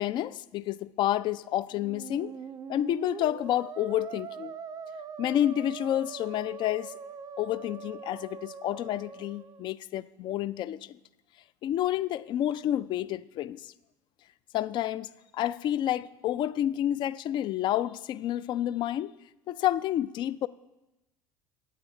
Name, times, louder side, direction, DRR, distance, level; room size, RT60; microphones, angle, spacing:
voice 1, 0.0-2.3 2.7-4.5 5.2-6.9 7.4-11.0 11.6-13.7 14.5-19.1 19.5-20.5, left 12 dB, 50° left, 0.3 m, -29 dB
Musical instrument, 1.7-9.7, right 6 dB, 35° right, 0.5 m, -42 dB
9.0 x 8.3 x 4.4 m
hypercardioid pair, 70°, 10 cm